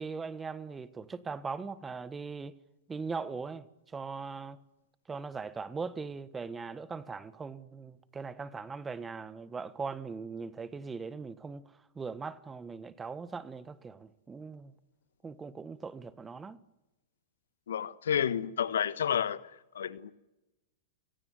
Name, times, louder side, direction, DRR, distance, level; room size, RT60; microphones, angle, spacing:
voice 1, 0.0-2.6 2.9-4.6 5.1-14.7 15.2-16.6, right 5 dB, 15° right, 1.5 m, -40 dB
voice 2, 17.7-19.4 19.7-20.1, left 8 dB, 75° left, 1.3 m, -30 dB
29.5 x 17.5 x 9.6 m
hypercardioid pair, 110°, 0 cm